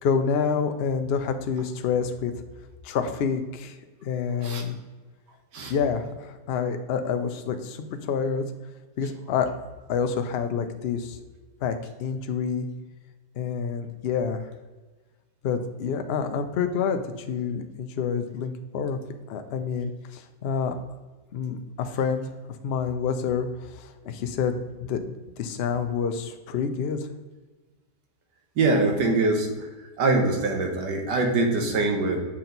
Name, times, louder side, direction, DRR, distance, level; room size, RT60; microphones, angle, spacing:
voice 1, 0.0-2.3 2.8-3.8 4.0-4.8 5.7-8.4 9.0-9.5 9.9-11.2 11.6-12.7 13.4-14.5 15.4-19.0 19.3-20.8 21.3-22.3 22.6-24.6 24.9-27.0, left 6 dB, 75° left, 7 dB, 0.5 m, -28 dB
voice 2, 28.6-29.7 30.0-32.3, right 3 dB, 85° right, 3 dB, 1.7 m, -23 dB
7.2 x 4.3 x 3.9 m, 1.3 s
omnidirectional pair, 1.8 m